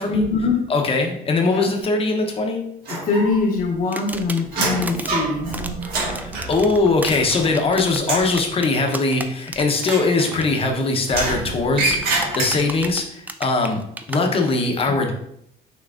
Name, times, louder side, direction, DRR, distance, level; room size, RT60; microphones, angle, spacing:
voice 1, 0.0-0.6 1.5-1.7 2.9-5.5 14.9-15.1, left 4 dB, 55° left, -1 dB, 1.0 m, -23 dB
voice 2, 0.7-2.6 6.2-13.8 14.1-15.1, left 3 dB, 35° left, 3 dB, 0.8 m, -21 dB
sound 1, 2.9-3.6 3.9-7.7 8.0-8.4 9.8-10.7 11.1-12.9, right 3 dB, 60° right, 1.5 m, -27 dB
sound 2, 3.9-5.1 5.5-9.9 10.2-10.4 11.9-14.2, right 2 dB, 10° right, 0.3 m, -33 dB
5.9 x 3.0 x 2.5 m, 0.74 s
cardioid pair, 110°, 17 cm